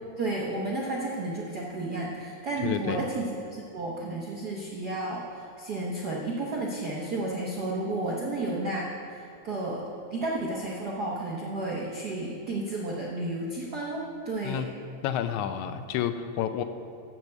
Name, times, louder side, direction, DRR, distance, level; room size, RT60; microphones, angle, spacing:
voice 1, 0.2-9.8 10.1-14.7, right 2 dB, 85° right, -3 dB, 0.8 m, -32 dB
voice 2, 2.6-3.0 14.4-14.7 15.0-16.6, left 10 dB, 85° left, 10 dB, 2.0 m, -30 dB
13.0 x 4.7 x 8.0 m, 2.4 s
omnidirectional pair, 3.3 m